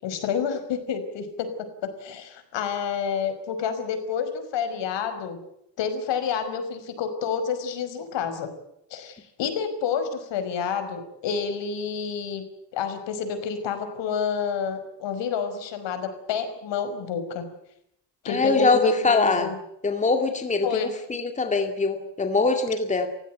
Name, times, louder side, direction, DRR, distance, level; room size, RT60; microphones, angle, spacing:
voice 1, 0.0-5.4 5.8-8.5 8.9-12.4 12.7-17.4 18.2-19.6 20.6-20.9, left 6 dB, 80° left, 9 dB, 5.4 m, -29 dB
voice 2, 18.3-19.5 19.8-23.1, left 3 dB, 15° left, 6 dB, 2.2 m, -23 dB
29.5 x 16.0 x 9.2 m, 0.76 s
cardioid pair, 170°, 43 cm